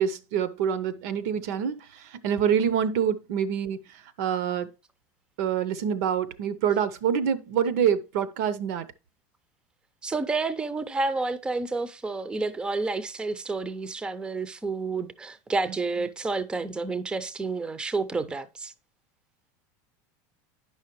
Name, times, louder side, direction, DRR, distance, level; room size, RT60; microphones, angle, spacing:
voice 1, 0.0-4.7 5.4-8.9, right 8 dB, 75° right, 0.7 m, -26 dB
voice 2, 10.0-18.7, right 3 dB, 10° right, 0.4 m, -30 dB
9.3 x 5.6 x 3.0 m
supercardioid pair, 135°, 9 cm